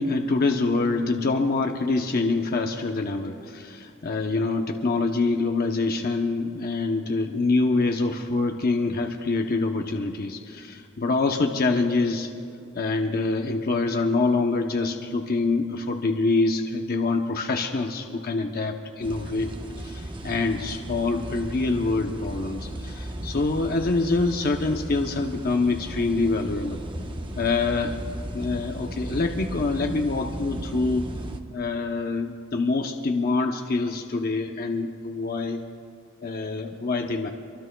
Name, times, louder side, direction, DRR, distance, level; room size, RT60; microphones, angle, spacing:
voice 1, 0.0-12.3 12.7-19.5 19.8-26.8 27.4-28.0 28.3-31.1 31.5-35.6 36.2-37.3, left 3 dB, 45° left, 3 dB, 0.7 m, -25 dB
sound 1, 19.0-31.4, right 1 dB, 25° right, 0.9 m, -36 dB
25.5 x 24.0 x 2.2 m, 2.4 s
head